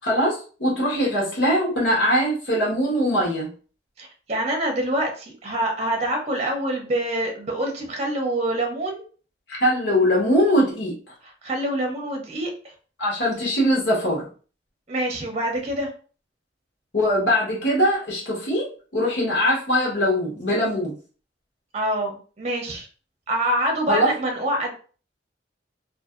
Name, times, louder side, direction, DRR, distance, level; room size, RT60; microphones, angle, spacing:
voice 1, 0.0-3.5 9.5-10.9 13.0-14.3 16.9-18.7 18.9-21.0 23.9-24.1, equal, 70° left, -4 dB, 1.2 m, -21 dB
voice 2, 4.0-9.0 11.4-12.5 14.9-15.9 21.7-22.9 23.3-24.7, right 1 dB, 35° right, 1 dB, 0.7 m, -26 dB
2.6 x 2.5 x 2.4 m, 0.39 s
head